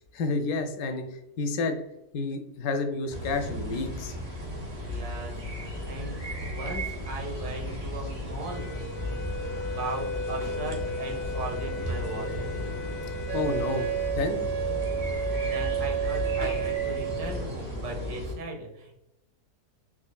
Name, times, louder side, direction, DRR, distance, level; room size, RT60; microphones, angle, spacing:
voice 1, 0.1-1.8 2.1-4.2 13.3-14.4, left 3 dB, 75° left, 6 dB, 1.0 m, -30 dB
sound 1, 3.1-18.3, left 1 dB, 30° right, 0.7 m, -34 dB
voice 2, 4.8-9.3 9.7-12.5 15.1-18.9, right 2 dB, 80° right, 0 dB, 1.5 m, -38 dB
Wind instrument woodwind instrument, 8.4-14.2, left 3 dB, 40° left, 0.6 m, -37 dB
Wind instrument woodwind instrument 2, 13.3-17.4, right 9 dB, 50° right, 1.1 m, -30 dB
4.3 x 3.0 x 2.2 m, 0.89 s
omnidirectional pair, 1.7 m